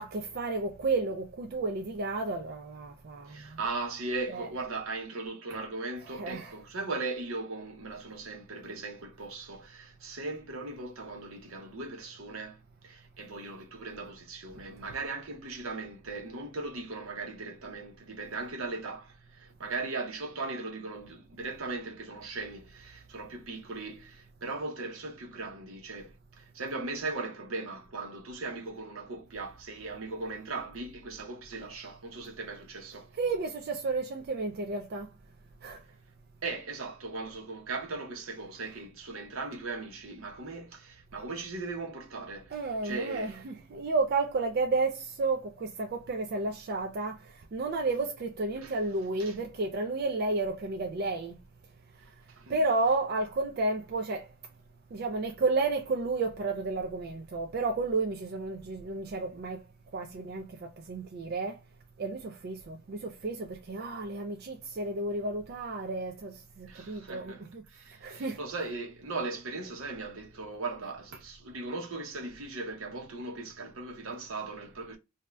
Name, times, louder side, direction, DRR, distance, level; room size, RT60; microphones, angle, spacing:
voice 1, 0.0-3.6 4.3-4.5 6.0-6.6 33.1-35.1 35.6-35.8 42.5-51.4 52.5-54.3 54.9-59.6 59.9-61.6 62.0-67.6 68.0-68.4, right 3 dB, 45° right, 0.3 m, -32 dB
voice 2, 3.3-33.1 36.4-42.5 42.8-43.4 48.6-48.7 49.2-49.3 52.4-52.6 66.7-67.4 67.7-75.0, right 3 dB, 75° right, 0.9 m, -38 dB
2.7 x 2.1 x 3.2 m
head